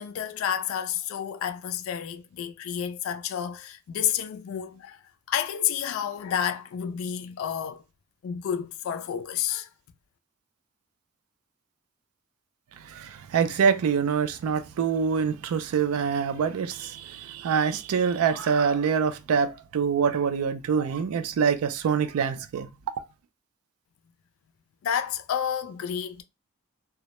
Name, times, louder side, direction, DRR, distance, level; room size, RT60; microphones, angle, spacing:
voice 1, 0.0-5.0 5.3-7.8 8.2-9.7 24.8-26.2, left 9 dB, 65° left, 0.3 m, -30 dB
voice 2, 12.8-22.7, right 6 dB, 85° right, 0.3 m, -25 dB
2.1 x 2.0 x 2.8 m
head